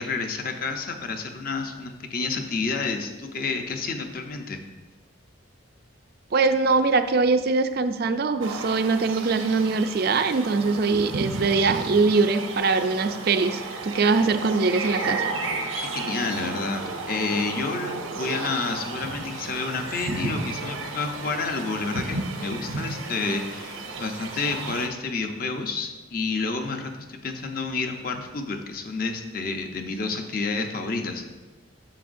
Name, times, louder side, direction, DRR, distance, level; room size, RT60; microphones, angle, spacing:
voice 1, 0.0-4.6 15.9-31.2, left 4 dB, 45° left, 5 dB, 0.7 m, -29 dB
voice 2, 6.3-15.3, right 4 dB, 50° right, 9 dB, 0.4 m, -22 dB
sound 1, 8.4-24.9, right 3 dB, 85° right, 0.8 m, -33 dB
10.0 x 6.9 x 2.6 m, 1.2 s
head